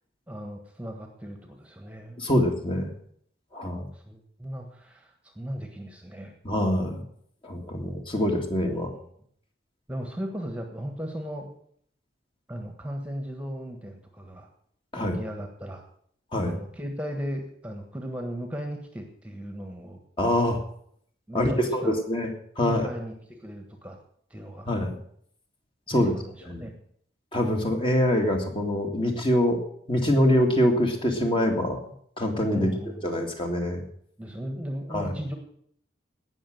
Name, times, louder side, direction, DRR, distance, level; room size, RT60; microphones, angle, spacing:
voice 1, 0.3-2.2 3.9-6.3 8.7-9.0 9.9-11.5 12.5-14.5 15.0-15.8 16.4-20.0 21.3-22.0 22.6-24.0 24.3-24.7 25.9-26.7 32.5-33.1 34.2-35.3, equal, 5° right, 4 dB, 1.4 m, -36 dB
voice 2, 2.2-2.9 3.5-3.9 6.4-7.0 7.4-8.9 14.9-15.2 16.3-16.6 20.2-20.6 21.3-22.3 22.6-22.9 24.7-25.0 25.9-26.1 26.5-26.7 27.3-29.6 29.9-31.8 32.2-32.7 33.0-33.8 34.9-35.1, left 1 dB, 25° left, 3 dB, 2.0 m, -24 dB
17.5 x 6.4 x 7.8 m, 0.65 s
head